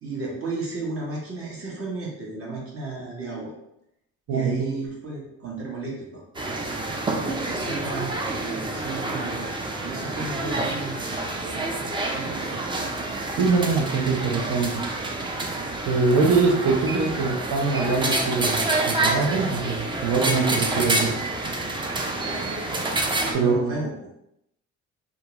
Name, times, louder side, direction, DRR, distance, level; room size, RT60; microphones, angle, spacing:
voice 1, 0.0-3.5 4.3-6.2 6.5-9.4 9.8-11.1 11.4-11.7 12.1-12.9 15.5-15.6 17.1-17.3 22.1-23.0 23.3-23.9, right 3 dB, 45° right, -4 dB, 1.0 m, -34 dB
sound 1, 6.3-23.3, right 2 dB, 15° right, 0.3 m, -28 dB
voice 2, 13.4-14.8 15.9-21.1 23.3-23.8, right 4 dB, 85° right, 1 dB, 0.6 m, -23 dB
2.5 x 2.2 x 2.9 m, 0.79 s
cardioid pair, 90°, 30 cm